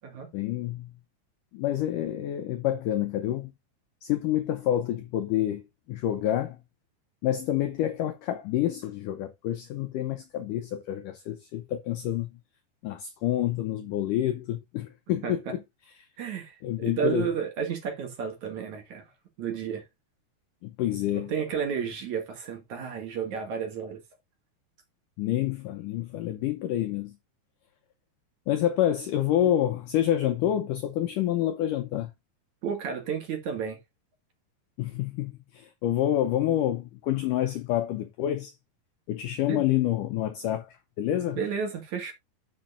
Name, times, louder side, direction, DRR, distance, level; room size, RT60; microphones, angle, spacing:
voice 1, 0.3-0.9 1.5-3.5 4.0-6.6 7.2-12.3 12.8-15.6 16.6-17.3 20.6-21.3 25.2-27.2 28.5-32.1 34.8-38.5 39.1-41.4, left 12 dB, 80° left, 1.9 m, -28 dB
voice 2, 16.2-19.0 19.4-19.8 21.1-24.0 32.6-33.8 39.5-39.6 41.4-42.1, right 7 dB, 50° right, 3.0 m, -32 dB
12.0 x 6.2 x 2.6 m
omnidirectional pair, 4.7 m